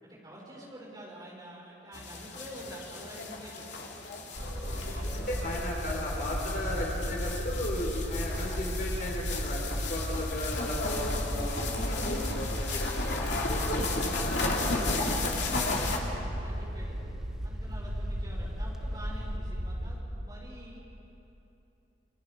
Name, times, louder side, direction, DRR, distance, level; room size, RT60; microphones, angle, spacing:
voice 1, 0.0-3.9 4.3-5.6 11.8-12.1 16.4-17.0 17.4-20.8, right 1 dB, 20° right, -5 dB, 6.5 m, -47 dB
sound 1, 1.9-16.0, left 3 dB, 70° left, 2.7 m, -35 dB
sound 2, 4.3-20.0, equal, 50° right, 2.8 m, -35 dB
voice 2, 4.6-13.8 14.2-15.9, left 1 dB, 50° left, -2 dB, 4.2 m, -36 dB
Wind, 6.2-19.4, equal, 5° right, 0.8 m, -45 dB
28.0 x 25.0 x 5.0 m, 2.9 s
head